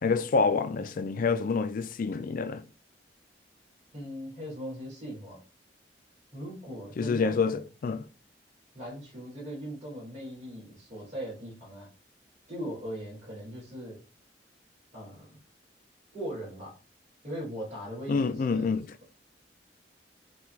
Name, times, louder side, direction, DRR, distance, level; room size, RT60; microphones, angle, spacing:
voice 1, 0.0-2.6 7.0-8.1 18.1-18.9, left 4 dB, 50° left, 0.4 m, -27 dB
voice 2, 3.9-5.4 6.3-7.6 8.7-11.9 12.5-14.0 14.9-15.4 16.1-16.8 17.2-18.7, equal, 40° right, 2.4 m, -39 dB
5.8 x 2.3 x 3.1 m
head